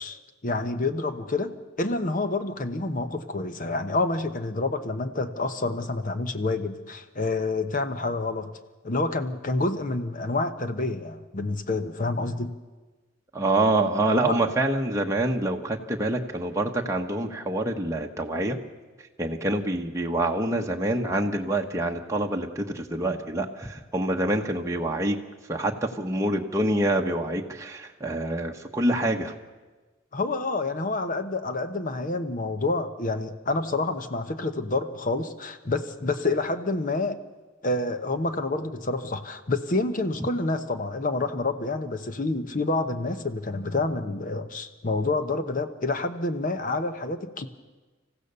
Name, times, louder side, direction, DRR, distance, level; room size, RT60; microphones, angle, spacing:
voice 1, 0.0-8.5 8.8-12.5 14.2-14.3 30.1-37.2 37.6-47.5, left 2 dB, 40° left, 10 dB, 1.0 m, -28 dB
voice 2, 13.3-18.6 19.2-25.2 25.5-25.7 26.0-29.3, right 1 dB, 15° right, 1 dB, 1.1 m, -26 dB
26.5 x 15.0 x 6.8 m, 1.3 s
head